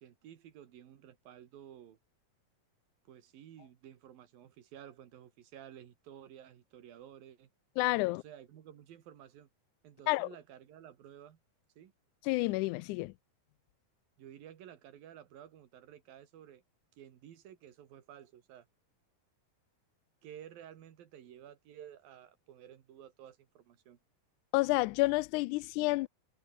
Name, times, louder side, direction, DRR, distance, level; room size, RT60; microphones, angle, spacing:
voice 1, 0.0-2.0 3.1-7.5 8.0-9.5 9.8-11.4 11.8-11.9 14.2-16.6 16.9-18.7 20.2-24.0, right 10 dB, 75° right, 3.7 m, -53 dB
voice 2, 7.8-8.2 10.1-10.3 12.2-13.1 24.5-26.1, left 23 dB, 90° left, 1.7 m, -29 dB
omnidirectional pair, 4.1 m